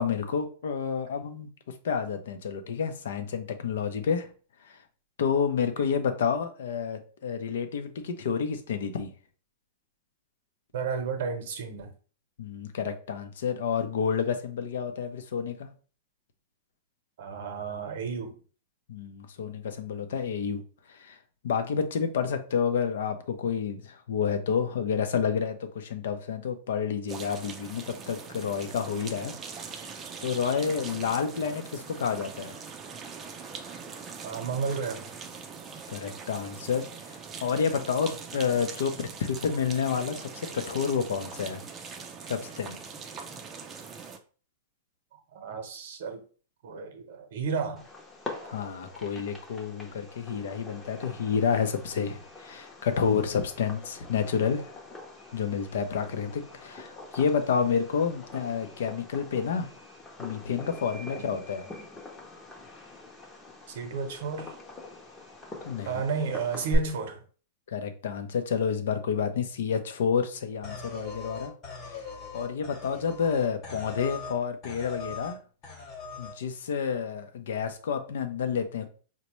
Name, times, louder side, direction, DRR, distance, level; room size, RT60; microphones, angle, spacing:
voice 1, 0.0-1.5 1.8-4.3 4.7-4.8 5.2-9.1 12.4-15.7 18.9-20.6 20.9-21.2 21.4-29.3 30.2-32.6 35.9-41.6 42.3-42.8 48.5-54.7 55.3-59.7 60.2-61.7 65.6-66.0 67.7-71.5 71.9-72.0 72.3-75.4 76.2-78.9, left 6 dB, 80° left, 8 dB, 0.6 m, -29 dB
voice 2, 10.7-11.9 17.2-18.3 34.2-35.1 45.3-46.2 46.6-47.9 48.4-48.5 61.1-61.5 63.7-64.6 65.9-67.2, right 5 dB, 70° right, 6 dB, 0.8 m, -33 dB
sound 1, 27.1-44.2, right 5 dB, 20° right, 0.4 m, -42 dB
Fireworks, 47.8-66.8, left 1 dB, 15° left, 0.7 m, -43 dB
sound 2, 70.6-74.4 74.6-75.4 75.6-76.4, left 5 dB, 35° left, 1.1 m, -40 dB
4.0 x 2.2 x 3.0 m, 0.39 s
hypercardioid pair, 140°, 0 cm